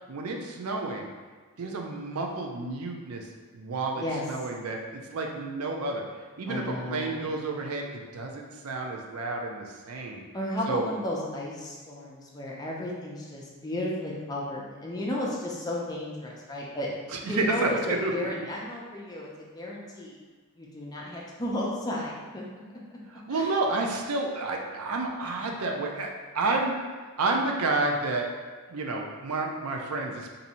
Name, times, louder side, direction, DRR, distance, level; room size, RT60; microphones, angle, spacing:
voice 1, 0.1-1.1 1.6-3.3 3.5-6.1 6.4-10.2 10.7-10.8 17.1-18.5 23.1-26.8 27.2-28.3 28.7-30.3, right 3 dB, 80° right, 1 dB, 0.5 m, -30 dB
voice 2, 6.5-7.3 10.3-16.9 17.2-20.2 20.6-22.4 23.3-23.6, left 1 dB, 20° left, -4 dB, 0.5 m, -33 dB
2.7 x 2.6 x 4.2 m, 1.4 s
head